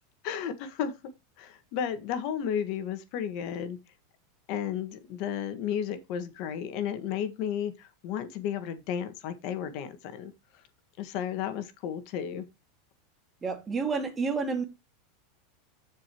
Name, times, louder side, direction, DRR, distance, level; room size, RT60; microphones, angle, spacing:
voice 1, 0.2-0.9 1.4-3.8 4.5-10.3 11.0-12.4, left 9 dB, 55° left, 1.7 m, -33 dB
voice 2, 13.4-14.6, right 4 dB, 20° right, 2.3 m, -29 dB
15.0 x 5.1 x 3.0 m
supercardioid pair, 125°, 0 cm